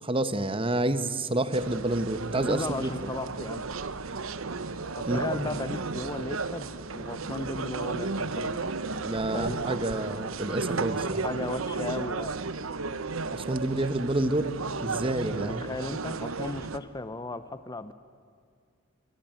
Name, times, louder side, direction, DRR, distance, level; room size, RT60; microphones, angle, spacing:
voice 1, 0.0-2.9 5.1-5.2 9.0-11.2 13.3-14.5 14.8-15.6, right 1 dB, 25° right, 11 dB, 1.1 m, -29 dB
sound 1, 1.5-16.8, right 4 dB, 75° right, 1.0 m, -34 dB
voice 2, 2.5-3.6 5.0-6.7 6.9-8.7 9.3-9.6 11.2-12.4 15.5-17.9, left 2 dB, 20° left, 12 dB, 0.7 m, -35 dB
26.5 x 23.5 x 9.2 m, 2.2 s
head